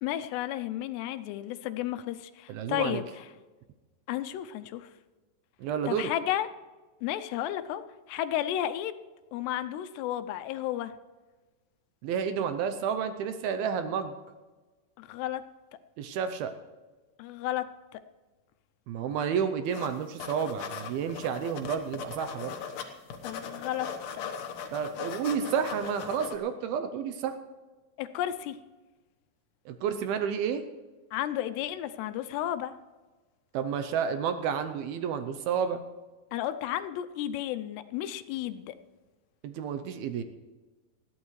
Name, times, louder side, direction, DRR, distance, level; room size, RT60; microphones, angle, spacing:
voice 1, 0.0-3.3 4.1-4.9 5.9-6.5 7.0-7.8 8.1-8.9 9.3-10.9 15.0-15.4 17.2-18.0 23.2-23.9 28.0-28.6 31.1-32.7 36.3-38.8, left 12 dB, 85° left, 11 dB, 2.8 m, -32 dB
voice 2, 2.5-3.0 5.6-6.1 12.0-14.1 16.0-16.5 18.9-22.6 24.7-27.4 29.7-30.6 33.5-35.8 39.4-40.2, right 7 dB, 75° right, 9 dB, 2.4 m, -30 dB
sound 1, 19.7-19.9 20.2-22.8 23.1-26.4, left 7 dB, 65° left, 2.3 m, -39 dB
20.5 x 14.5 x 3.2 m, 1.3 s
omnidirectional pair, 4.8 m